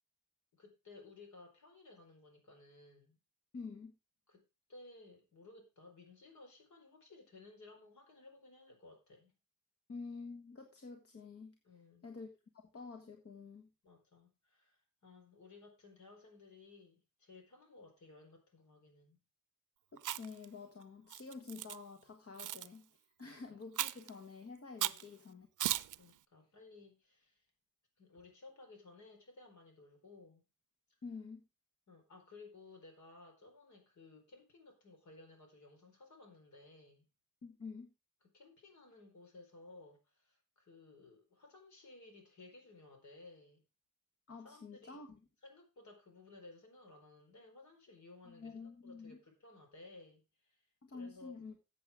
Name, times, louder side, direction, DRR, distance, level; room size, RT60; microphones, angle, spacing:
voice 1, 0.6-3.2 4.3-4.4 4.7-9.3 11.6-12.1 13.8-19.2 21.0-21.1 22.4-22.5 23.2-23.6 24.8-25.0 26.0-27.4 28.0-30.4 30.9-31.0 31.9-37.1 38.3-43.6 44.4-45.0 45.4-51.4, left 3 dB, 70° left, 4 dB, 4.3 m, -58 dB
voice 2, 3.5-3.9 9.9-11.5 12.0-12.3 12.5-13.7 19.9-25.5 31.0-31.4 37.4-37.9 44.3-45.1 48.2-49.2 50.8-51.6, left 4 dB, 50° left, 4 dB, 1.5 m, -49 dB
Chewing mastication, 20.0-20.4 21.1-21.8 22.4-22.7 23.8-24.1 24.8-25.0 25.6-26.0, right 13 dB, 85° right, 0.5 m, -36 dB
14.5 x 7.8 x 3.5 m, 0.27 s
wide cardioid pair, 145°, 30 cm